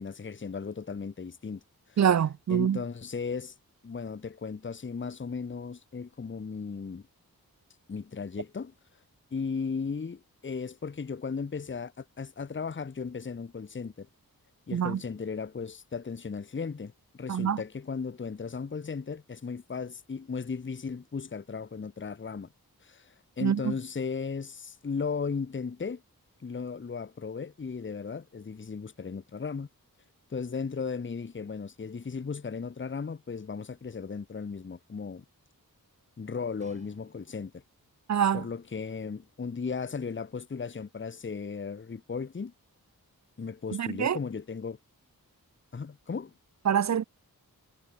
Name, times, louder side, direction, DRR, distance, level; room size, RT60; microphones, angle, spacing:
voice 1, 0.0-1.6 1.9-2.0 2.5-3.5 3.8-7.0 7.9-8.7 9.3-14.1 14.7-22.5 22.8-26.0 26.4-29.7 30.3-35.2 36.2-37.6 38.3-42.5 43.4-44.8 45.7-46.3, left 5 dB, 35° left, 0.7 m, -36 dB
voice 2, 2.0-2.8 14.7-15.0 17.3-17.6 23.4-23.7 38.1-38.4 43.7-44.2 46.7-47.0, right 8 dB, 50° right, 0.4 m, -25 dB
sound 1, 36.6-37.9 38.6-38.7, right 1 dB, 20° right, 6.2 m, -60 dB
wide cardioid pair, 65°, 37 cm